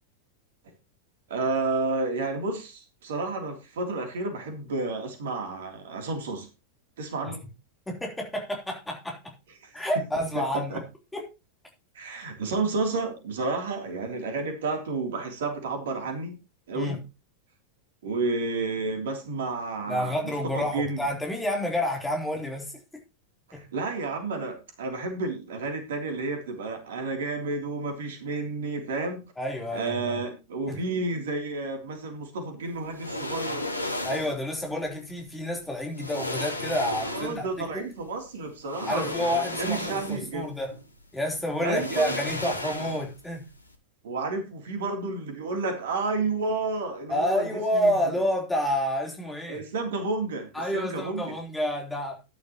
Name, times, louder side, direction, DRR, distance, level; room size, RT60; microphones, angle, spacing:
voice 1, 1.3-6.5 7.0-7.4 9.6-9.9 10.3-10.4 10.7-10.8 11.9-16.4 16.7-17.0 18.0-21.0 23.5-29.2 29.7-33.7 37.1-40.5 41.6-42.2 44.0-47.9 49.5-51.3, right 3 dB, 60° right, 3.2 m, -31 dB
voice 2, 7.9-9.3 9.7-10.8 11.1-11.2 16.7-17.0 19.9-22.7 23.5-23.6 29.4-30.1 30.7-30.8 34.0-37.8 38.8-40.8 41.1-43.5 47.1-49.6 50.5-52.2, equal, 5° left, 3.7 m, -29 dB
sound 1, 32.9-34.4 35.5-35.6 36.0-37.6 38.6-40.4 40.7-40.8 41.6-43.3 43.5-43.7, left 1 dB, 80° left, 1.5 m, -34 dB
13.5 x 11.0 x 3.0 m
figure-of-eight pair, 90°, 0 cm